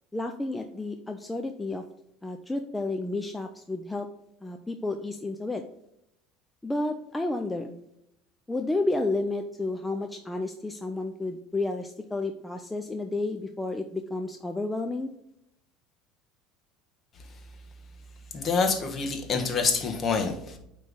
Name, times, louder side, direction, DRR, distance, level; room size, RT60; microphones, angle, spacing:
voice 1, 0.1-1.8 2.2-4.1 4.4-5.6 6.6-7.7 8.5-15.1, left 2 dB, 10° left, 5 dB, 0.5 m, -31 dB
voice 2, 18.3-20.6, left 5 dB, 35° left, 4 dB, 1.3 m, -26 dB
9.1 x 3.3 x 3.6 m, 0.79 s
supercardioid pair, 85°, 0 cm